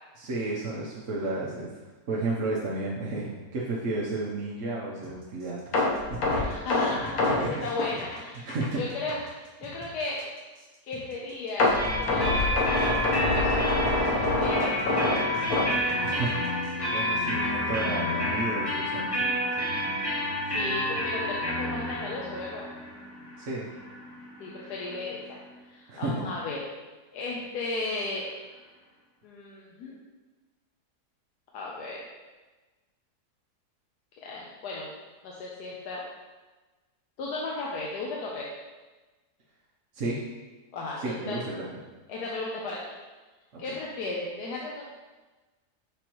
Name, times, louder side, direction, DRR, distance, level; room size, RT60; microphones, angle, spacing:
voice 1, 0.2-1.7 2.1-6.0 6.4-6.6 7.2-7.7 8.4-8.8 16.0-16.6 16.9-19.9 23.4-23.7 25.9-26.2 39.9-40.2 41.0-41.4 43.5-43.6, right 2 dB, 55° right, -6 dB, 1.2 m, -32 dB
sound 1, 5.0-16.7, right 2 dB, 20° right, 1.1 m, -49 dB
sound 2, 5.7-8.8 9.1-9.3 9.7-9.8 11.6-16.5 16.8-17.0 17.4-17.5, left 2 dB, 65° left, 1.4 m, -26 dB
voice 2, 6.3-10.2 10.8-15.0 20.5-22.6 24.4-25.4 25.7-26.6 27.1-28.3 29.2-30.0 31.5-32.0 34.2-34.9 35.2-36.0 37.2-38.5 40.7-41.0 41.3-41.4 42.1-42.9 43.6-44.8, left 3 dB, 85° left, -3 dB, 1.3 m, -35 dB
sound 3, 11.7-25.3, left 1 dB, 20° left, 0.7 m, -30 dB
6.9 x 5.1 x 3.0 m, 1.2 s
omnidirectional pair, 1.7 m